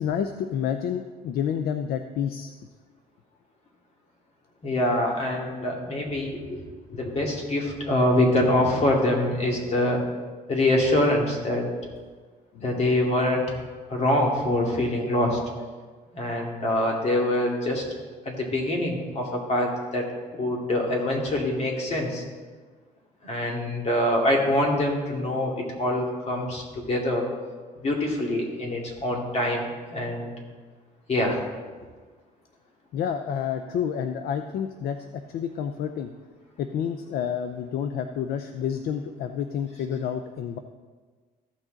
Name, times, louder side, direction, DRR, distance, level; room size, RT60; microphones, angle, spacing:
voice 1, 0.0-2.5 12.5-13.0 32.9-36.1 36.6-40.6, left 8 dB, 65° left, 8 dB, 0.5 m, -29 dB
voice 2, 4.6-6.6 6.9-10.0 10.5-11.7 12.6-13.4 13.9-15.4 16.1-17.8 18.3-20.1 20.3-22.2 23.2-27.2 27.8-30.3 31.1-31.4, left 1 dB, 40° left, -1 dB, 2.4 m, -24 dB
14.5 x 6.3 x 3.9 m, 1.4 s
cardioid pair, 110°, 17 cm